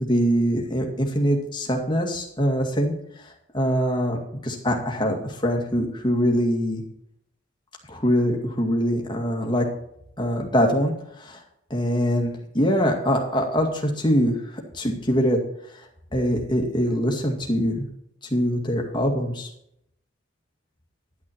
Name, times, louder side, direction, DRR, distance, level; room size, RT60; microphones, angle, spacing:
voice 1, 0.0-2.9 3.2-6.8 7.9-9.7 10.2-11.4 11.7-15.4 16.1-17.9 18.3-19.5, equal, 20° left, 1 dB, 2.1 m, -23 dB
10.5 x 9.9 x 4.4 m, 0.75 s
head